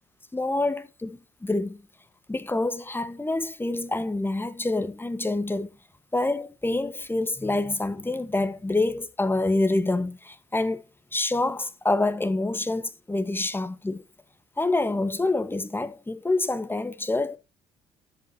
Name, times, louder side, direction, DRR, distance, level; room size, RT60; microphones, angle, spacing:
voice 1, 0.3-1.8 2.3-5.7 6.1-10.8 11.1-14.0 14.6-17.4, left 2 dB, 15° left, 1.5 m, -27 dB
13.0 x 7.8 x 2.9 m
hypercardioid pair, 50°, 14 cm